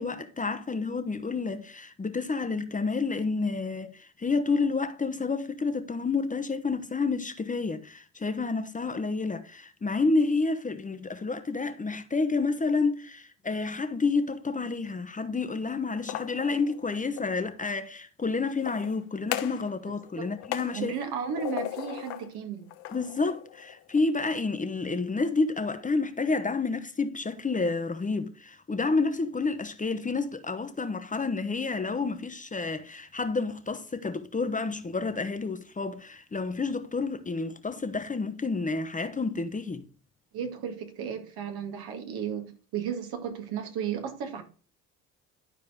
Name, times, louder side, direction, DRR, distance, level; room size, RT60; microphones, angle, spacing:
voice 1, 0.0-20.9 22.9-39.9, left 4 dB, 20° left, 1.0 m, -29 dB
sound 1, 15.9-17.4 18.5-19.7 20.0-22.3 22.7-24.0, left 14 dB, 75° left, 1.0 m, -38 dB
voice 2, 20.7-22.7 40.3-44.4, right 8 dB, 65° right, 1.9 m, -34 dB
12.0 x 4.6 x 3.5 m
hypercardioid pair, 65°, 39 cm